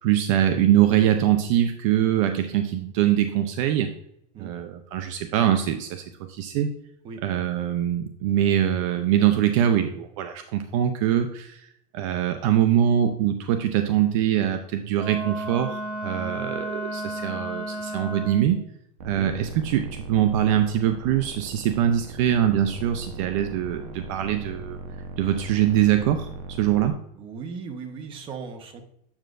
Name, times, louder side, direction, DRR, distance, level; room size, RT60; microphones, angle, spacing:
voice 1, 0.0-3.9 4.4-6.7 7.2-11.7 11.9-18.6 19.0-24.8 25.2-27.0, right 11 dB, 50° right, 7 dB, 0.6 m, -23 dB
Wind instrument woodwind instrument, 14.9-18.6, right 1 dB, 5° right, 2.6 m, -33 dB
voice 2, 16.2-16.5 19.2-19.3 27.1-28.8, right 5 dB, 25° right, 5 dB, 0.9 m, -38 dB
sound 1, 19.0-26.9, right 4 dB, 65° right, 1.0 m, -39 dB
7.6 x 7.3 x 2.5 m, 0.73 s
supercardioid pair, 160°, 21 cm